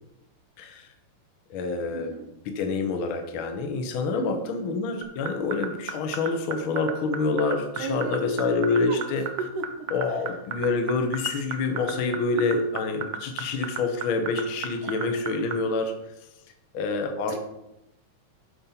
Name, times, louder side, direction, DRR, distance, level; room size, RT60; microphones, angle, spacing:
voice 1, 0.6-0.9 1.5-2.1 2.5-9.3 9.9-15.9 16.7-17.4, left 3 dB, 65° left, 6 dB, 1.3 m, -27 dB
voice 2, 1.9-2.3 4.2-4.3 7.8-8.2 8.7-9.0 9.4-9.9 14.8-15.2 17.3-17.4, right 4 dB, 90° right, 4 dB, 2.5 m, -35 dB
sound 1, 5.0-15.5, right 10 dB, 70° right, 1.5 m, -31 dB
11.0 x 4.3 x 5.7 m, 0.86 s
omnidirectional pair, 3.6 m